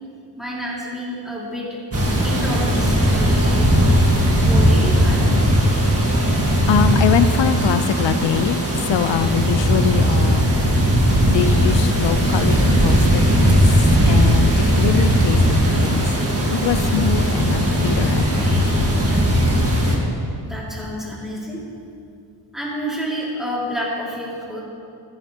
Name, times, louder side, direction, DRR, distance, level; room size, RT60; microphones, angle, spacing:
voice 1, 0.4-1.7 2.2-3.7 4.4-5.3 20.4-21.6 22.5-24.6, equal, ahead, -5 dB, 2.4 m, -29 dB
sound 1, 1.9-20.0, equal, 35° right, 1.7 m, -17 dB
voice 2, 6.7-10.5 11.3-13.6 14.1-16.0 16.5-18.5, left 8 dB, 80° left, 11 dB, 0.7 m, -23 dB
14.5 x 12.5 x 2.9 m, 2.5 s
wide cardioid pair, 155°, 43 cm